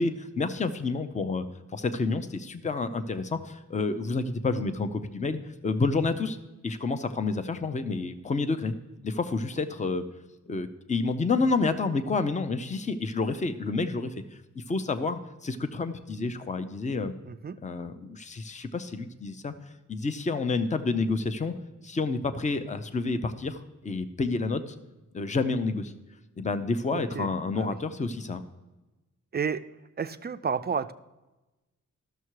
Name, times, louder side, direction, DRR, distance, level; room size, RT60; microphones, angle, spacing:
voice 1, 0.0-1.5 1.7-6.4 6.6-8.7 9.0-10.0 10.5-14.2 14.5-17.1 17.6-19.5 19.9-21.5 21.8-24.7 25.1-25.9 26.4-28.4, left 3 dB, 25° left, 10 dB, 0.6 m, -29 dB
voice 2, 17.2-17.6 26.9-27.8 29.3-29.6 30.0-30.9, right 6 dB, 35° right, 11 dB, 0.4 m, -31 dB
12.5 x 6.6 x 4.7 m, 1.1 s
wide cardioid pair, 165°, 31 cm